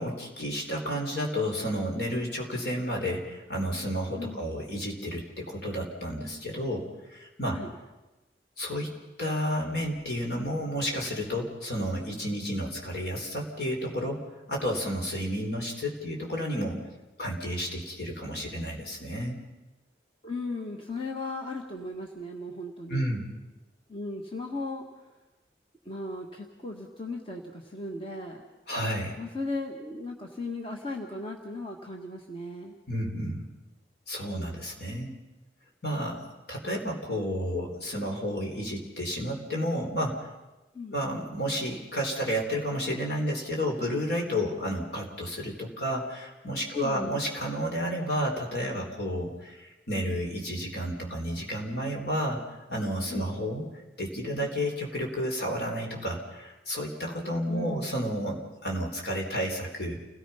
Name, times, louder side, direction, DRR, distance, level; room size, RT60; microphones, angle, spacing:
voice 1, 0.0-7.6 8.6-14.2 14.5-16.8 17.2-19.4 22.9-23.4 28.7-29.2 32.9-33.5 34.1-35.1 35.8-36.2 36.5-40.3 40.9-52.4 52.7-53.7 54.0-60.0, equal, 65° left, 0 dB, 4.1 m, -31 dB
voice 2, 20.2-23.0 23.9-24.9 25.8-28.4 29.2-32.7 34.2-34.6 40.7-41.0 46.7-47.1 53.1-53.3 57.5-57.8, left 2 dB, 30° left, 1 dB, 1.6 m, -37 dB
29.0 x 18.0 x 5.7 m, 1.1 s
head